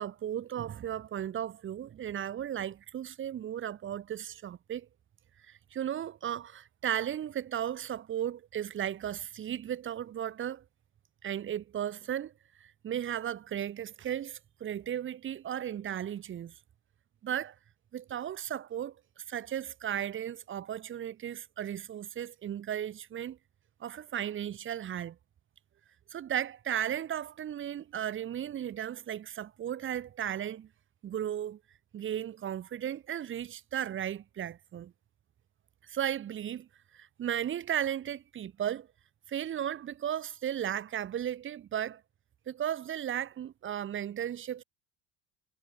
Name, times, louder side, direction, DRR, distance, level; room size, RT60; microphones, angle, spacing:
voice 1, 0.0-4.9 5.5-10.6 11.2-12.3 12.6-16.5 17.2-17.5 17.9-18.9 19.3-23.4 23.8-25.2 26.1-30.7 31.0-31.6 31.9-34.9 35.9-36.7 36.9-38.9 39.3-42.0 42.5-44.6, right 10 dB, 30° right, 2.3 m, -35 dB
cardioid pair, 170°, 42 cm